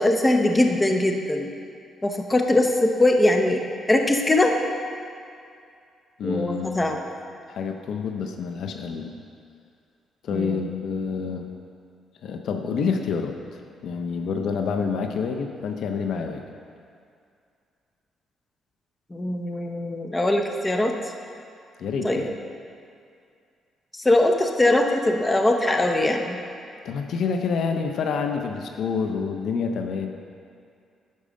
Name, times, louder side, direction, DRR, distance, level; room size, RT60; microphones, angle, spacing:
voice 1, 0.0-1.5 2.0-4.6 6.2-7.0 10.3-10.7 19.1-21.0 22.0-22.3 24.0-26.4, left 1 dB, 15° left, 3 dB, 0.9 m, -21 dB
voice 2, 6.2-7.0 7.5-9.1 10.2-11.5 12.2-16.4 21.8-22.3 26.8-30.1, left 5 dB, 70° left, 4 dB, 0.7 m, -28 dB
11.0 x 4.9 x 6.4 m, 2.4 s
cardioid pair, 90°, 0 cm